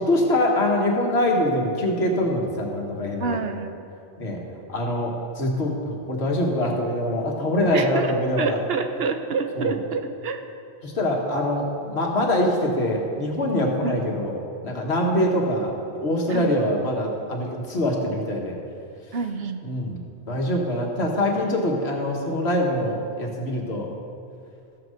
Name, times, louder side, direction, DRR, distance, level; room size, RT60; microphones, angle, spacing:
voice 1, 0.0-3.4 4.2-4.4 4.7-8.6 9.6-9.8 10.8-14.3 14.6-15.7 16.0-18.6 19.6-20.0 20.3-23.9, left 1 dB, 80° left, 0 dB, 1.8 m, -24 dB
voice 2, 3.2-3.8 7.7-10.4 13.8-14.0 16.3-16.6 19.1-19.6, right 5 dB, 70° right, 6 dB, 1.0 m, -28 dB
14.5 x 6.0 x 6.6 m, 2.5 s
omnidirectional pair, 1.1 m